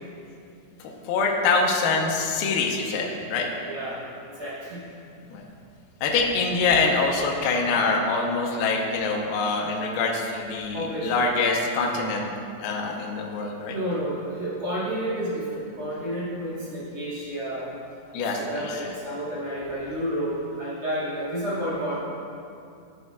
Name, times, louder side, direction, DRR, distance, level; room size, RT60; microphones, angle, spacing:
voice 1, 0.8-3.5 5.3-5.4 6.0-12.3 12.6-13.8 18.1-19.0, left 4 dB, 80° left, 0 dB, 2.3 m, -25 dB
voice 2, 3.6-4.0 4.4-4.8 10.7-11.1 13.7-17.7 18.3-22.0, equal, 50° right, -10 dB, 2.3 m, -30 dB
13.5 x 5.6 x 2.3 m, 2.5 s
omnidirectional pair, 5.0 m